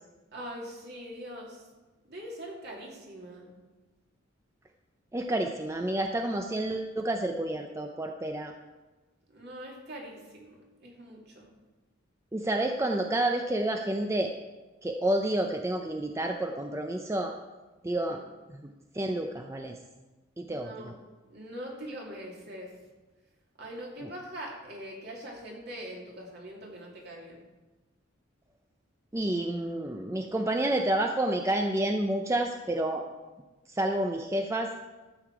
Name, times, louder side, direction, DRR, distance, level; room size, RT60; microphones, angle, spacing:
voice 1, 0.3-1.6 2.1-3.5 9.3-11.5 18.1-18.2 20.4-21.0 21.3-22.7 23.6-27.4, equal, 55° right, -2 dB, 2.7 m, -42 dB
voice 2, 5.1-8.5 12.3-14.3 14.8-17.3 17.8-18.2 18.5-18.7 18.9-19.8 20.4-20.9 24.0-24.1 29.1-33.1 33.7-34.9, right 1 dB, 15° right, 4 dB, 0.5 m, -29 dB
12.5 x 7.7 x 4.7 m, 1.2 s
head